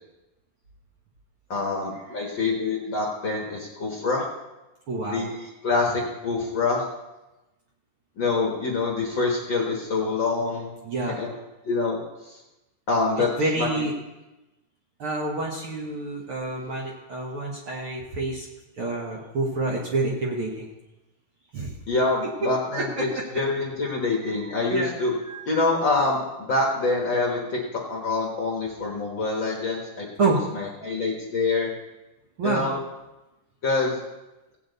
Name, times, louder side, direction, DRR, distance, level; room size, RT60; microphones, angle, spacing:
voice 1, 1.5-4.3 5.1-6.8 8.2-10.7 11.0-11.3 11.6-12.4 12.9-13.3 13.6-13.9 21.9-25.1 25.5-31.7 32.4-32.8 33.6-34.0, left 3 dB, 50° left, -2 dB, 1.6 m, -26 dB
voice 2, 4.9-5.2 10.8-11.2 13.4-13.9 15.0-18.5 18.8-20.7 21.5-21.8 23.0-23.1 24.2-24.9 25.2-25.5 30.2-30.4 32.4-32.6, right 3 dB, 55° right, -2 dB, 1.7 m, -28 dB
17.0 x 8.7 x 4.0 m, 1.0 s
omnidirectional pair, 3.6 m